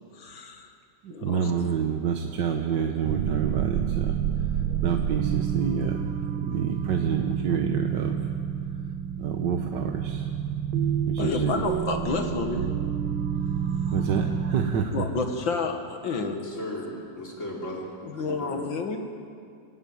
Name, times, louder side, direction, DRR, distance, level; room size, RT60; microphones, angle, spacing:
voice 1, 0.1-0.7 1.1-1.5 11.2-12.7 14.9-16.4 18.0-19.0, left 4 dB, 65° left, 5 dB, 2.5 m, -30 dB
voice 2, 1.0-4.2 4.4-4.6 4.8-6.0 6.3-8.2 9.2-10.3 11.1-11.7 13.9-15.1, right 7 dB, 60° right, 3 dB, 1.6 m, -28 dB
sound 1, 3.0-14.7, right 8 dB, 90° right, 1.7 m, -28 dB
voice 3, 16.2-18.7, equal, 35° left, -3 dB, 4.3 m, -37 dB
25.5 x 15.5 x 8.9 m, 2.3 s
omnidirectional pair, 2.3 m